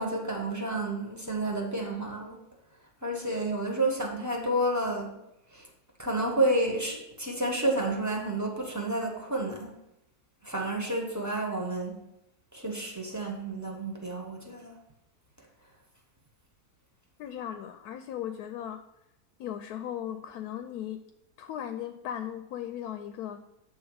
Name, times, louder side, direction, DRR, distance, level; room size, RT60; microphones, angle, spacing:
voice 1, 0.0-2.4 3.0-5.1 5.5-5.7 6.0-9.7 10.4-12.0 12.5-14.7, right 1 dB, 15° right, 0 dB, 1.0 m, -30 dB
voice 2, 17.2-18.8 19.4-21.0 21.4-23.4, left 10 dB, 75° left, 8 dB, 1.0 m, -37 dB
8.0 x 3.3 x 6.3 m, 0.86 s
omnidirectional pair, 1.7 m